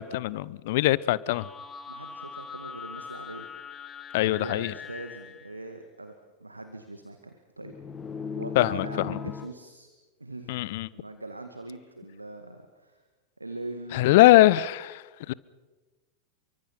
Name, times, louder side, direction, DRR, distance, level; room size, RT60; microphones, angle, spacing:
voice 1, 0.0-1.5 4.1-4.7 8.6-9.2 10.5-10.9 13.9-15.3, left 16 dB, 50° left, 0.8 m, -22 dB
sound 1, 1.3-5.6 7.6-9.5, left 6 dB, 20° left, 1.8 m, -40 dB
voice 2, 1.9-3.5 4.3-6.2 6.4-7.7 8.4-9.9 10.2-10.6 10.9-13.0 13.4-14.5, right 2 dB, 85° right, 2.0 m, -41 dB
30.0 x 24.5 x 5.9 m
figure-of-eight pair, 90°, 0 cm